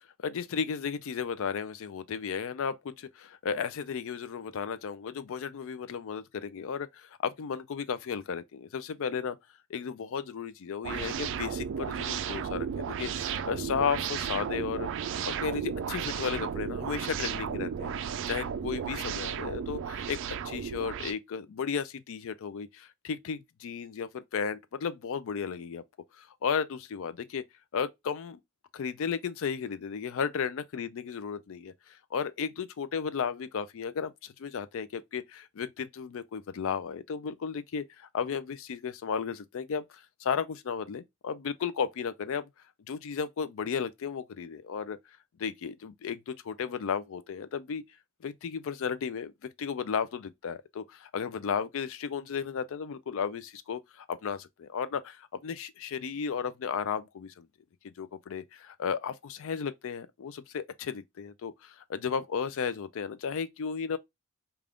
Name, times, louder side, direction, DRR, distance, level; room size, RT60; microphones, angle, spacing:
voice 1, 0.2-9.4 9.7-14.9 15.3-20.2 20.4-25.8 26.2-27.4 27.7-28.4 28.7-31.7 32.1-42.5 42.9-45.0 45.4-47.8 48.2-49.3 49.6-57.5 58.0-64.0, left 6 dB, 65° left, 0.4 m, -34 dB
sound 1, 10.8-21.1, right 7 dB, 60° right, 0.3 m, -34 dB
3.4 x 2.3 x 3.6 m
head